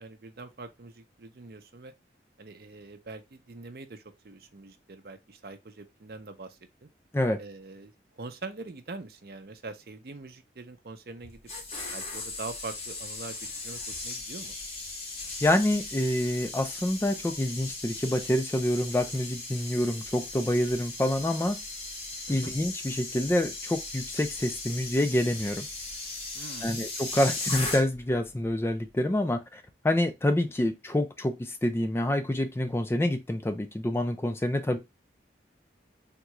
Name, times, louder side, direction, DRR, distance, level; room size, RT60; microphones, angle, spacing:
voice 1, 0.0-1.9 2.4-6.9 7.4-11.4 11.9-14.6 22.3-22.5 26.3-26.8, right 3 dB, 55° right, 0.5 m, -43 dB
sound 1, 11.2-28.2 28.4-28.7, left 3 dB, 35° left, 1.1 m, -38 dB
voice 2, 15.4-21.6 22.3-25.7 26.6-34.8, left 1 dB, 15° left, 0.3 m, -27 dB
3.6 x 2.3 x 2.9 m
head